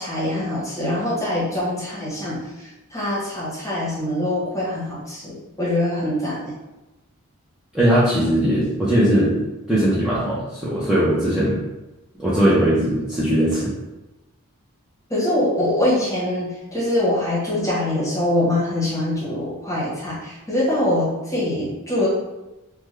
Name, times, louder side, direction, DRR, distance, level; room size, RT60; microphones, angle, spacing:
voice 1, 0.0-6.5 15.1-22.1, left 1 dB, 15° left, -7 dB, 1.0 m, -24 dB
voice 2, 7.7-9.4 9.7-11.6 12.2-13.7, right 1 dB, 5° right, -11 dB, 0.6 m, -19 dB
3.5 x 2.2 x 3.1 m, 1.0 s
head